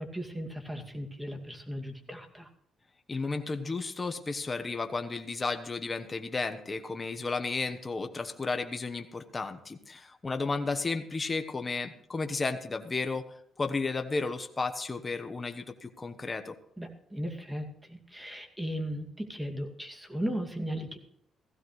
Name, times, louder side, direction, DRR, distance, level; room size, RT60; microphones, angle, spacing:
voice 1, 0.0-2.5 16.8-21.0, equal, 10° right, 4 dB, 2.3 m, -36 dB
voice 2, 3.1-16.6, left 3 dB, 25° left, 7 dB, 1.1 m, -33 dB
16.0 x 15.5 x 3.2 m, 0.67 s
cardioid pair, 90°, 0 cm